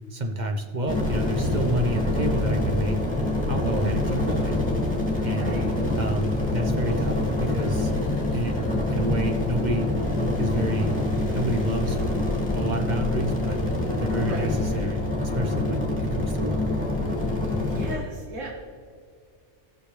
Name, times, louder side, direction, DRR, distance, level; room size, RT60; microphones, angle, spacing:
voice 1, 0.1-3.0 3.5-4.6 5.2-5.5 6.0-7.9 8.3-9.9 10.4-11.0 11.3-12.0 12.5-13.6 14.0-16.7, right 1 dB, 40° right, 3 dB, 1.0 m, -29 dB
sound 1, 0.9-18.0, left 1 dB, 5° left, 2.1 m, -26 dB
voice 2, 3.8-4.2 5.2-5.7 14.2-14.5 17.6-18.5, right 2 dB, 85° right, -2 dB, 1.8 m, -35 dB
19.0 x 6.5 x 3.3 m, 2.1 s
omnidirectional pair, 1.3 m